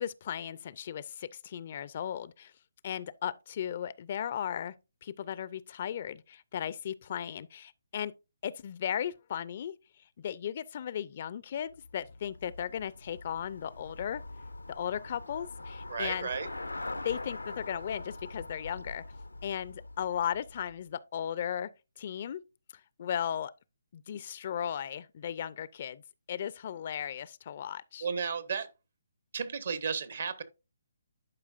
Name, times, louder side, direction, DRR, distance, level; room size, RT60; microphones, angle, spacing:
voice 1, 0.0-2.5 2.8-4.8 5.0-8.1 8.4-9.8 10.2-14.2 14.7-16.3 17.0-19.0 19.4-21.7 22.0-22.4 23.0-23.5 23.9-26.0 26.3-28.1, left 9 dB, 45° left, 0.4 m, -36 dB
Traffic noise roadway noise / Bicycle, 11.7-20.9, left 2 dB, 90° left, 0.6 m, -43 dB
voice 2, 15.9-16.5 28.0-28.7 29.3-30.4, right 6 dB, 60° right, 1.0 m, -33 dB
10.5 x 4.8 x 2.5 m
figure-of-eight pair, 140°, 0 cm